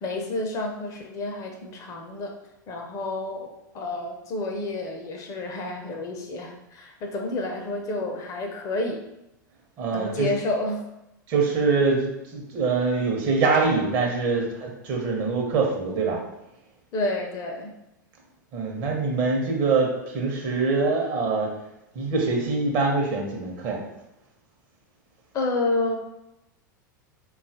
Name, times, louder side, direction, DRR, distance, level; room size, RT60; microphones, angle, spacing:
voice 1, 0.0-2.3 2.7-9.0 9.9-10.8 16.9-17.7 25.3-25.9, left 2 dB, 35° left, 2 dB, 0.5 m, -29 dB
voice 2, 9.8-10.4 11.3-16.2 18.5-21.5 21.9-23.8, right 4 dB, 45° right, 0 dB, 0.8 m, -24 dB
3.8 x 2.3 x 2.6 m, 0.90 s
figure-of-eight pair, 85°, 11 cm